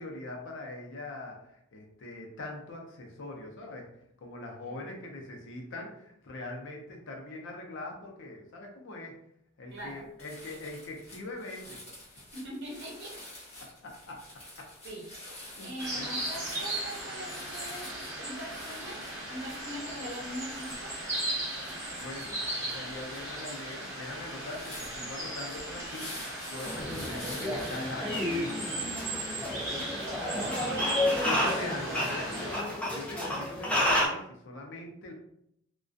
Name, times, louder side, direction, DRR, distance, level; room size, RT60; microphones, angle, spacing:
voice 1, 0.0-3.9 4.2-9.2 9.6-11.8 13.8-14.2 14.6-14.7 15.6-16.1 22.0-26.1 26.5-28.2 31.2-35.1, left 2 dB, 60° left, 1 dB, 0.5 m, -42 dB
voice 2, 9.7-10.0 12.3-13.3 14.8-15.1 15.6-19.0 19.3-20.9 26.8-27.3 27.7-29.5 30.2-31.3, equal, 60° right, -2 dB, 0.8 m, -42 dB
sound 1, 9.8-9.9 10.2-27.9, left 1 dB, 30° left, 1.0 m, -48 dB
sound 2, 15.8-32.6, right 1 dB, 15° right, 1.1 m, -37 dB
sound 3, 26.6-34.1, left 1 dB, 5° left, 0.5 m, -31 dB
2.3 x 2.2 x 2.5 m, 0.75 s
head